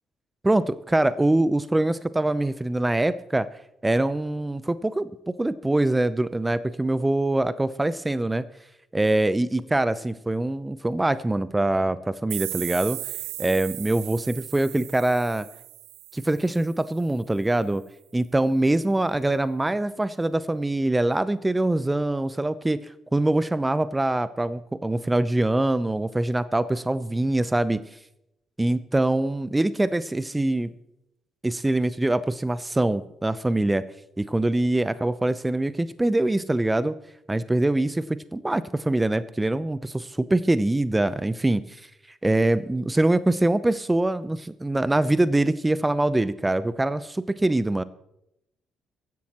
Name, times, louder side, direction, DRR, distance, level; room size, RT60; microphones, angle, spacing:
voice 1, 0.4-3.5 3.8-8.4 8.9-13.0 13.4-15.5 16.1-17.8 18.1-27.8 28.6-30.7 31.4-33.8 34.2-36.9 37.3-38.0 38.3-41.8 42.2-47.8, right 2 dB, 15° right, 15 dB, 0.7 m, -24 dB
sound 1, 12.3-17.0, right 18 dB, 75° right, 0.5 m, -37 dB
23.5 x 11.0 x 3.0 m, 0.83 s
hypercardioid pair, 45°, 0 cm